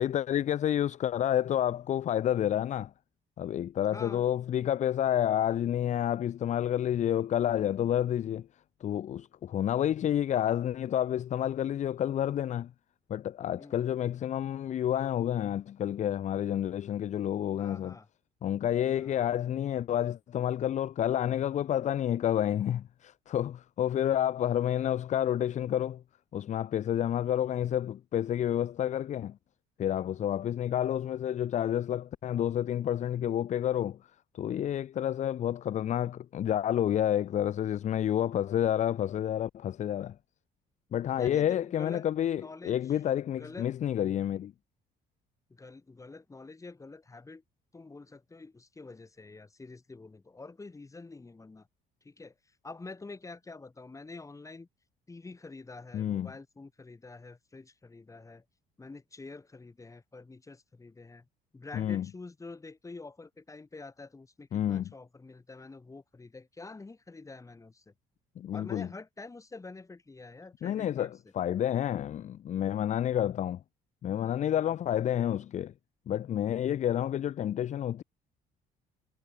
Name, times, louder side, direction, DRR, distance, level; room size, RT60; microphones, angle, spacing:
voice 1, 0.0-2.9 3.4-8.5 8.8-12.7 13.1-18.0 18.4-26.0 26.3-29.4 29.8-34.0 34.3-40.2 40.9-44.5 55.9-56.3 61.7-62.1 64.5-64.9 68.4-68.9 70.6-73.6 74.0-75.7 76.1-78.0, left 10 dB, 45° left, 0.6 m, -29 dB
voice 2, 3.9-4.3 13.6-13.8 17.6-18.1 18.9-19.1 41.2-42.0 42.3-42.8 43.4-43.7 45.5-47.4 47.7-51.7 52.0-52.3 52.6-54.7 55.1-58.4 58.8-61.3 61.5-67.9 68.5-71.1 74.5-74.8, left 3 dB, 20° left, 7.8 m, -47 dB
cardioid pair, 110°, 17 cm